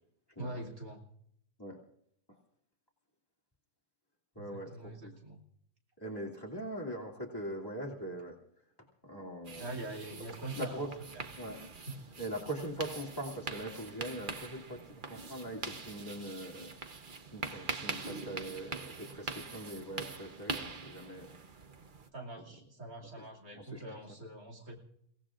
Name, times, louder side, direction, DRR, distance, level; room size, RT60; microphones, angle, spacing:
voice 1, 0.4-1.0 4.4-5.4 9.6-11.2 11.9-12.1 22.1-24.8, right 2 dB, 65° right, -1 dB, 3.2 m, -44 dB
voice 2, 4.4-5.1 6.0-8.4 9.0-9.7 10.6-10.9 11.4-11.6 12.2-16.7 17.3-21.3 23.5-24.0, right 1 dB, 15° left, -1 dB, 2.6 m, -41 dB
sound 1, 9.5-22.1, right 4 dB, 40° right, 1.0 m, -43 dB
29.5 x 17.5 x 2.5 m, 0.72 s
omnidirectional pair, 1.6 m